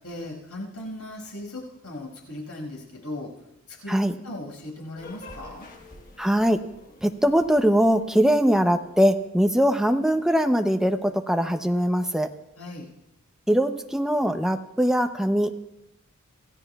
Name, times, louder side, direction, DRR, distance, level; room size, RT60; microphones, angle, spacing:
voice 1, 0.0-3.3 3.7-4.0 4.2-5.7 12.6-12.8, left 1 dB, 85° left, -1 dB, 5.8 m, -37 dB
sound 1, 5.0-9.6, left 2 dB, 40° left, 1.4 m, -48 dB
voice 2, 6.2-6.6 7.0-12.3 13.5-15.6, equal, ahead, 6 dB, 0.7 m, -21 dB
26.5 x 15.0 x 2.4 m, 0.90 s
head